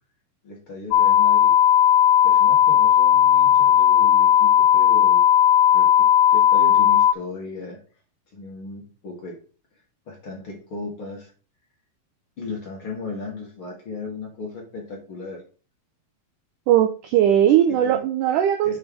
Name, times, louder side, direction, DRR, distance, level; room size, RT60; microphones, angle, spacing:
voice 1, 0.4-1.5 2.2-5.2 5.7-7.8 8.3-9.4 10.1-11.3 12.4-15.4 17.8-18.0 18.6-18.8, left 3 dB, 45° left, -1 dB, 2.1 m, -36 dB
sound 1, 0.9-7.1, left 10 dB, 85° left, 2.4 m, -16 dB
voice 2, 16.7-18.8, right 10 dB, 80° right, 8 dB, 1.8 m, -19 dB
7.3 x 4.8 x 4.8 m, 0.37 s
omnidirectional pair, 4.3 m